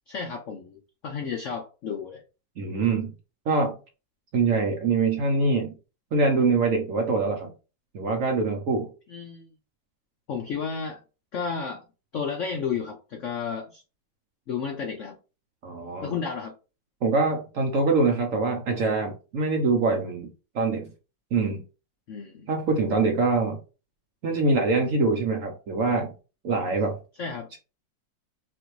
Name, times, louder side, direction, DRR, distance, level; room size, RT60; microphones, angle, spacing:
voice 1, 0.1-2.2 9.1-9.5 10.3-11.0 11.3-11.8 12.1-13.8 14.5-15.2 16.0-16.5 22.1-22.5 27.2-27.5, left 6 dB, 75° left, 4 dB, 0.6 m, -32 dB
voice 2, 2.6-3.1 3.5-3.8 4.3-5.7 6.1-7.5 7.9-8.9 15.6-16.1 17.0-20.3 20.5-20.9 21.3-21.6 22.5-23.6 24.2-26.1 26.4-27.0, right 3 dB, 60° right, 3 dB, 0.9 m, -24 dB
5.9 x 2.6 x 3.1 m, 0.32 s
omnidirectional pair, 2.0 m